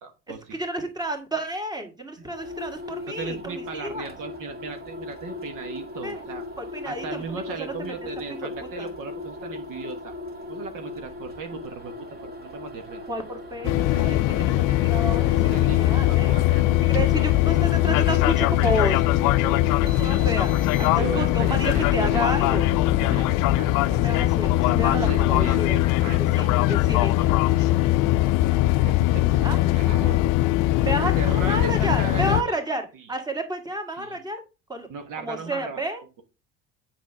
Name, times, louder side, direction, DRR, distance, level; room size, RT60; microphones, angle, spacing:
voice 1, 0.0-0.6 3.1-6.5 6.8-10.1 10.5-11.9 12.2-13.0 13.6-14.5 15.4-17.4 21.0-22.6 23.0-23.7 24.6-26.5 28.8-30.3 31.2-32.4 32.9-33.1 34.0-34.2 34.9-35.8, right 5 dB, 65° right, 6 dB, 1.3 m, -37 dB
voice 2, 0.5-4.1 6.0-6.3 6.6-8.1 8.4-8.5 8.8-8.9 13.1-16.4 16.8-19.0 19.4-22.7 23.9-25.8 26.2-27.8 28.1-28.2 28.6-28.7 29.4-29.6 30.8-32.8 33.1-34.4 34.7-34.9 35.2-36.0, right 1 dB, 10° right, 4 dB, 1.8 m, -31 dB
sound 1, 2.2-21.2, left 2 dB, 25° right, 2.0 m, -39 dB
sound 2, 13.6-32.4, left 16 dB, 60° left, 0.5 m, -21 dB
7.4 x 5.7 x 3.4 m, 0.29 s
hypercardioid pair, 75°, 36 cm